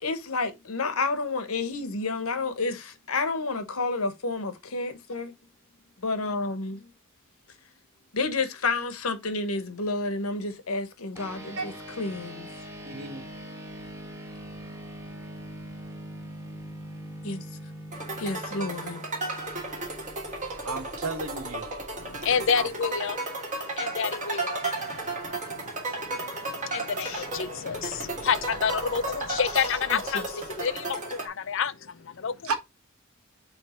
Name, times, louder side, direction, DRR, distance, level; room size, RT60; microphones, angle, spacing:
voice 1, 0.0-5.3 6.0-6.9 8.1-12.5 17.2-17.4 18.2-19.0 19.5-19.9 24.0-24.1 27.0-27.2 29.9-30.2, left 3 dB, 80° left, 1.1 m, -30 dB
sound 1, 11.2-20.9, equal, 15° right, 1.2 m, -42 dB
voice 2, 12.8-13.2 20.6-21.8 22.6-22.7 24.4-24.5 32.4-32.5, right 3 dB, 90° right, 1.4 m, -33 dB
sound 2, 17.9-31.3, right 2 dB, 35° right, 2.4 m, -34 dB
voice 3, 22.0-23.2 23.8-25.7 26.0-32.5, left 7 dB, 60° left, 0.5 m, -29 dB
7.2 x 3.2 x 4.4 m
head